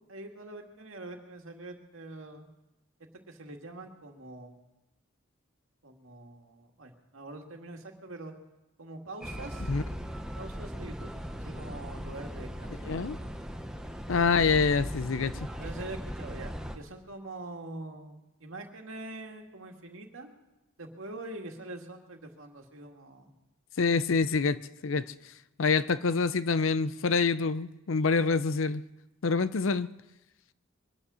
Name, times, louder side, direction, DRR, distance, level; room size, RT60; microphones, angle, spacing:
voice 1, 0.1-2.5 3.3-4.5 5.8-8.3 8.8-9.7 10.4-13.6 15.6-20.3 20.8-23.3, right 2 dB, 80° right, 3 dB, 2.1 m, -44 dB
sound 1, 9.2-16.8, equal, 5° right, 0.9 m, -38 dB
voice 2, 12.9-13.2 14.1-15.3 23.8-24.6 24.8-25.0 25.6-28.8 29.2-29.9, left 4 dB, 75° left, 15 dB, 0.6 m, -26 dB
22.0 x 9.8 x 6.3 m, 0.98 s
head